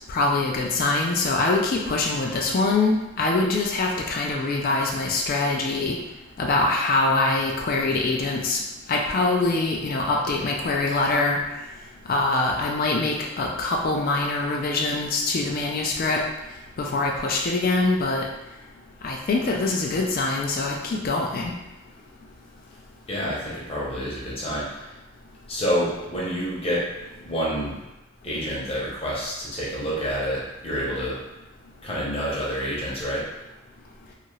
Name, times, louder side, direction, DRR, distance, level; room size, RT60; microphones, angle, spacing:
voice 1, 0.1-6.0 6.4-8.6 8.9-11.4 12.1-16.2 16.8-18.2 19.0-21.5, left 3 dB, 40° left, 0 dB, 0.3 m, -24 dB
voice 2, 23.1-25.0 25.5-26.8 27.2-27.8 28.2-31.2 31.8-33.2, equal, 25° left, -6 dB, 0.8 m, -28 dB
2.7 x 2.4 x 3.1 m, 0.99 s
head